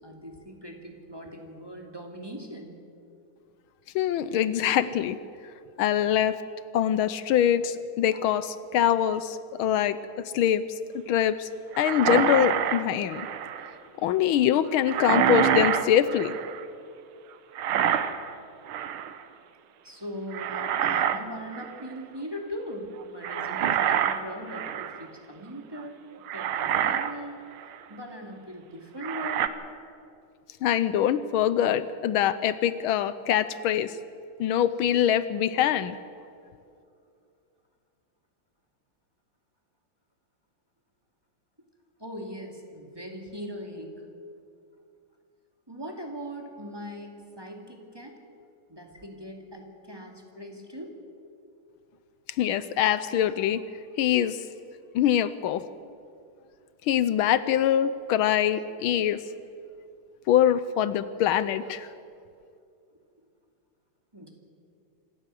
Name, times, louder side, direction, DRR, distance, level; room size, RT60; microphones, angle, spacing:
voice 1, 0.0-2.9 19.8-26.0 26.3-27.5 27.9-29.4 42.0-44.0 45.7-51.0 64.1-64.3, equal, 10° right, 1 dB, 2.3 m, -40 dB
voice 2, 3.9-5.2 5.8-6.4 6.7-10.6 11.1-11.5 11.8-13.2 14.0-16.3 30.6-33.9 34.4-36.0 52.4-53.6 54.0-54.4 54.9-55.6 56.9-59.2 60.3-61.9, left 10 dB, 80° left, 14 dB, 1.5 m, -24 dB
sound 1, 11.7-13.7 14.9-16.6 17.5-18.3 18.7-19.2 20.3-21.2 21.5-21.8 23.2-25.1 25.8-25.9 26.3-27.2 27.6-27.7 29.0-29.5, right 9 dB, 80° right, 1.8 m, -26 dB
26.5 x 14.5 x 7.6 m, 2.4 s
omnidirectional pair, 2.3 m